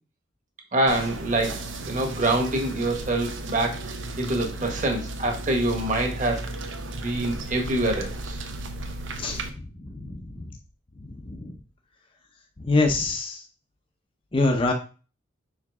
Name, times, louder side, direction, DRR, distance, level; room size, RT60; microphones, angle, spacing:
voice 1, 0.7-6.4 6.9-8.4, right 1 dB, 40° right, 2 dB, 1.4 m, -26 dB
sound 1, 0.9-9.5, right 2 dB, 70° right, 0.9 m, -35 dB
voice 2, 9.8-10.4 11.3-11.6 12.6-13.4 14.3-14.7, left 3 dB, 25° left, 3 dB, 0.7 m, -25 dB
5.8 x 4.8 x 3.5 m, 0.36 s
head